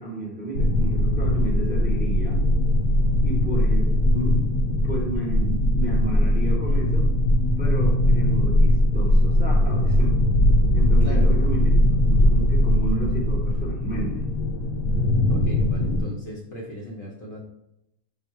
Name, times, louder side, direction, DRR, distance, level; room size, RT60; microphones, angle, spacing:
voice 1, 0.0-2.4 3.2-4.4 4.7-7.1 7.6-10.1 10.7-11.7 12.0-14.3, right 2 dB, 10° right, -2 dB, 0.6 m, -32 dB
sound 1, 0.5-16.0, left 1 dB, 80° left, 1.1 m, -20 dB
voice 2, 11.0-11.4 15.3-17.4, equal, 55° left, -2 dB, 0.7 m, -36 dB
5.6 x 2.1 x 4.5 m, 0.85 s
omnidirectional pair, 1.5 m